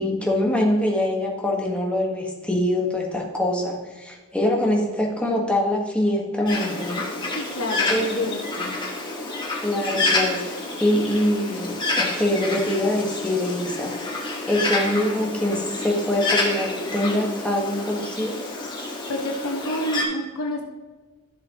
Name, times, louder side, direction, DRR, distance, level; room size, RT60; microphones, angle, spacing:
voice 1, 0.0-7.0 7.9-8.1 9.6-14.1 14.5-18.4, left 1 dB, 5° left, -1 dB, 1.5 m, -24 dB
Bird, 6.5-20.0, left 2 dB, 20° left, 1.7 m, -28 dB
voice 2, 7.3-8.8 19.1-20.6, left 1 dB, 75° left, 0 dB, 1.4 m, -29 dB
13.0 x 7.3 x 3.0 m, 1.3 s
head